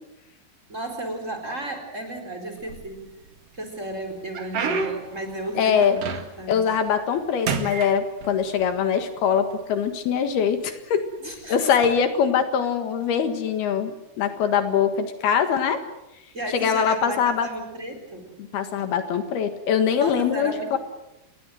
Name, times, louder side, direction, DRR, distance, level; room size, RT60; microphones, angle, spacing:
voice 1, 0.7-3.1 3.5-6.1 6.4-6.7 11.2-11.8 16.3-18.3 20.0-20.8, right 1 dB, 20° right, 6 dB, 4.2 m, -33 dB
sound 1, 2.6-3.3 3.8-6.6 6.9-7.2 7.5-8.7 9.5-9.6 10.3-10.5 11.7-11.9, right 5 dB, 45° right, 2.3 m, -30 dB
voice 2, 5.6-6.0 6.5-11.0 11.5-15.8 16.5-17.5 18.4-20.8, left 7 dB, 70° left, 8 dB, 3.5 m, -23 dB
28.0 x 21.5 x 7.9 m, 0.91 s
omnidirectional pair, 4.8 m